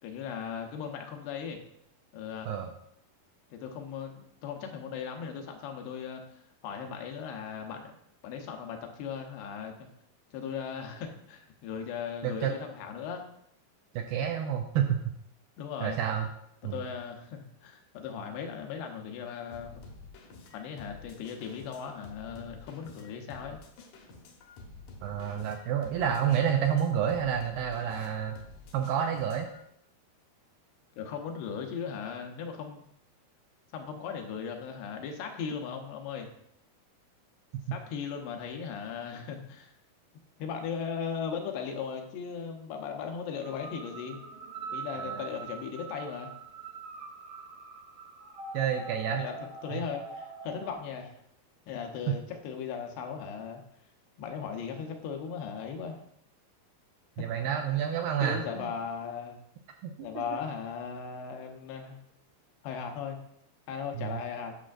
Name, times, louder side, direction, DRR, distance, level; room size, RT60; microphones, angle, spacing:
voice 1, 0.0-1.6 2.1-2.5 3.5-7.9 8.2-9.9 10.3-13.2 15.6-16.0 16.7-19.8 20.5-23.6 31.0-32.8 33.7-36.3 37.7-39.7 40.4-44.2 44.7-46.3 49.1-49.4 49.6-51.2 51.7-53.6 54.2-56.0 57.2-57.3 58.2-59.4 60.0-62.0 62.6-63.2 63.7-64.5, left 6 dB, 85° left, 3 dB, 3.0 m, -38 dB
voice 2, 14.0-15.0 15.8-16.3 16.6-16.8 25.0-28.4 28.7-29.5 37.5-37.8 44.9-45.3 48.5-49.2 49.7-49.8 57.2-58.7 59.8-60.2 64.0-64.2, right 9 dB, 80° right, 4 dB, 2.1 m, -29 dB
sound 1, 19.5-29.6, left 3 dB, 70° left, 2.1 m, -50 dB
sound 2, 43.2-50.7, right 4 dB, 60° right, 1.4 m, -43 dB
11.0 x 6.3 x 2.5 m, 0.74 s
omnidirectional pair, 4.6 m